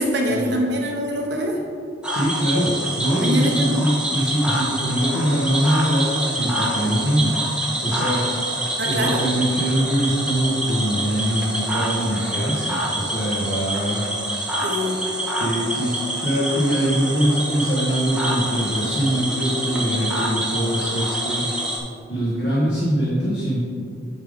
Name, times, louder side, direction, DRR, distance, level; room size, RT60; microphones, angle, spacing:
voice 1, 0.0-1.6 3.2-3.8 8.8-9.2 14.6-15.0, equal, 60° right, 0 dB, 1.0 m, -23 dB
Cricket / Frog, 2.0-21.8, right 1 dB, 5° right, 0.7 m, -26 dB
voice 2, 2.1-7.4 7.8-8.3 8.8-14.1 15.4-21.5 22.1-23.6, equal, 55° left, -7 dB, 1.3 m, -23 dB
9.0 x 3.7 x 5.1 m, 2.3 s
head